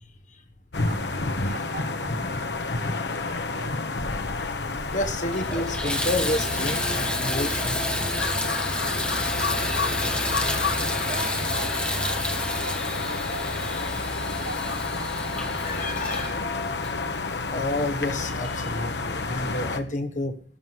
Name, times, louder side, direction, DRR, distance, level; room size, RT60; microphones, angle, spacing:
sound 1, 0.7-19.8, left 3 dB, 70° left, 1.2 m, -29 dB
voice 1, 0.9-3.8 11.0-13.8 14.4-15.7, right 3 dB, 70° right, 5.4 m, -42 dB
Water tap faucet / Bathtub (filling or washing), 4.6-4.7 5.2-17.6 18.3-18.4 18.9-19.0, left 1 dB, 5° left, 1.5 m, -31 dB
voice 2, 4.9-7.8 15.6-16.5 17.5-20.3, left 1 dB, 45° left, 1.6 m, -30 dB
14.0 x 6.4 x 9.4 m
head